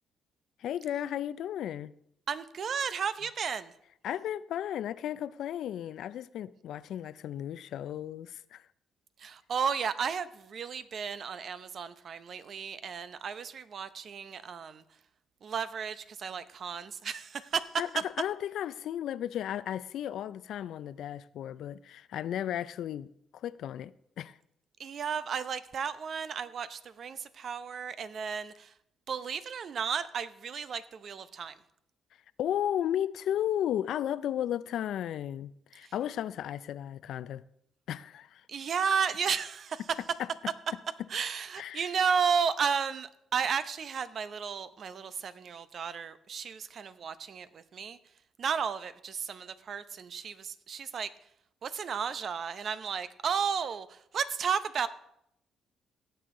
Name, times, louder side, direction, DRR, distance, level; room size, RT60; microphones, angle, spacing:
voice 1, 0.6-1.9 4.0-8.7 17.8-17.9 18.2-24.3 32.4-37.4 37.9-38.4 41.6-41.8, left 10 dB, 75° left, 0.4 m, -34 dB
voice 2, 2.3-3.7 9.2-14.8 15.4-17.8 24.8-28.7 29.1-31.6 35.8-35.9 38.5-39.8 41.1-48.0 48.4-51.1 51.6-54.9, right 6 dB, 55° right, 0.6 m, -33 dB
17.0 x 7.0 x 3.7 m
cardioid pair, 90°, 0 cm